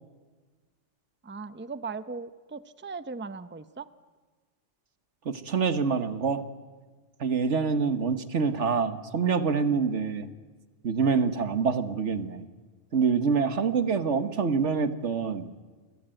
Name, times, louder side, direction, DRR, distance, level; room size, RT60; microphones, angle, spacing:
voice 1, 1.2-3.9, right 4 dB, 10° right, 12 dB, 0.7 m, -38 dB
voice 2, 5.2-6.4 7.2-10.3 10.8-12.5 12.9-15.5, right 5 dB, 80° right, 10 dB, 1.7 m, -26 dB
28.5 x 23.0 x 9.0 m, 1.4 s
omnidirectional pair, 1.2 m